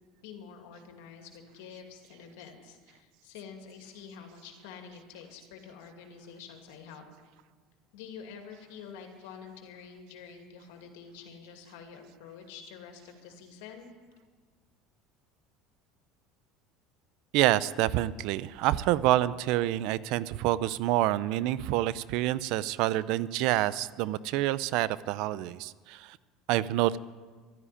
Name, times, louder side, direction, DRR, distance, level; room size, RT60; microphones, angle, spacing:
voice 1, 0.2-7.0 7.9-13.9, left 6 dB, 80° left, 4 dB, 2.5 m, -47 dB
voice 2, 17.3-26.2 26.5-27.0, right 15 dB, 70° right, 18 dB, 0.5 m, -27 dB
12.5 x 10.0 x 10.0 m, 1.5 s
supercardioid pair, 100°, 0 cm